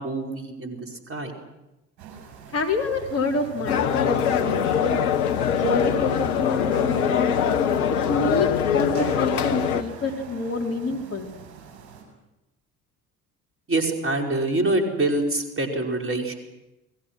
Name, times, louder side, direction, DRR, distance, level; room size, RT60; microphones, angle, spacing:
voice 1, 0.0-1.3 13.7-16.3, right 2 dB, 25° right, 2 dB, 5.2 m, -25 dB
sound 1, 2.0-12.0, right 7 dB, 60° right, 7.5 m, -42 dB
voice 2, 2.5-5.0 5.5-7.3 8.1-11.3, left 3 dB, 30° left, 0 dB, 3.8 m, -27 dB
sound 2, 3.7-9.8, left 8 dB, 70° left, 1.2 m, -23 dB
29.5 x 21.0 x 6.2 m, 0.97 s
figure-of-eight pair, 55°, 46 cm